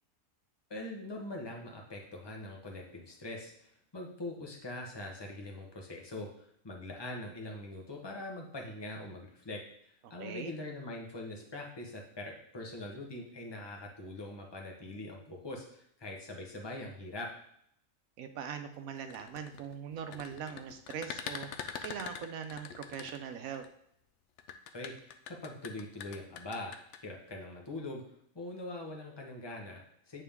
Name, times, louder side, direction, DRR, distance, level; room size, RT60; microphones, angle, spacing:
voice 1, 0.7-9.6 10.1-17.3 24.7-28.0 28.3-30.2, left 2 dB, 20° left, 0 dB, 1.0 m, -43 dB
voice 2, 10.0-10.5 18.2-23.7, right 7 dB, 85° right, 8 dB, 1.1 m, -41 dB
sound 1, 19.0-23.7 24.4-27.0, left 8 dB, 65° left, 0.8 m, -43 dB
8.7 x 3.7 x 3.5 m, 0.71 s
omnidirectional pair, 1.5 m